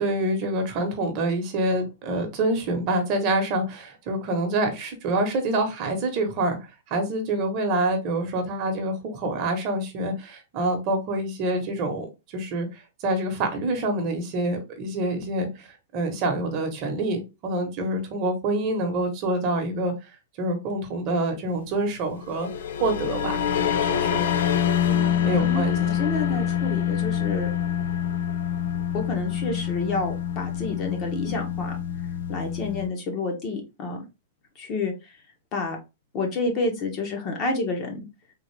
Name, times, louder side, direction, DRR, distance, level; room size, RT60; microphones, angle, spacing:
voice 1, 0.0-6.6 6.9-12.1 12.3-19.9 20.4-22.5 22.8-23.4 23.8-24.2 25.2-25.8, right 2 dB, 35° right, 5 dB, 1.0 m, -26 dB
sound 1, 22.2-32.9, left 9 dB, 75° left, 0.4 m, -26 dB
voice 2, 24.9-27.5 28.9-31.8 32.3-34.0 34.6-34.9 35.5-35.8 36.1-38.0, left 3 dB, 30° left, 2 dB, 0.9 m, -29 dB
3.6 x 2.5 x 3.2 m, 0.26 s
supercardioid pair, 160°, 0 cm